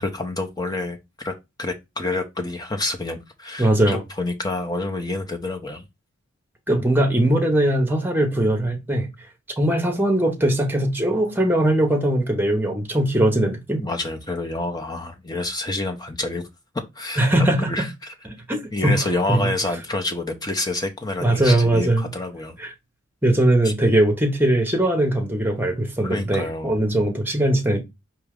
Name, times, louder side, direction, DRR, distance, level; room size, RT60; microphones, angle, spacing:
voice 1, 0.0-5.9 13.8-16.5 16.9-18.1 18.7-22.6 23.6-23.7 26.0-26.8, left 2 dB, 20° left, 0.7 m, -28 dB
voice 2, 3.6-4.0 6.7-9.1 9.6-13.8 17.2-17.9 18.5-19.0 19.3-19.5 21.2-22.1 22.6-22.7 23.2-27.8, right 1 dB, 10° right, 1.0 m, -20 dB
4.5 x 3.0 x 3.6 m
head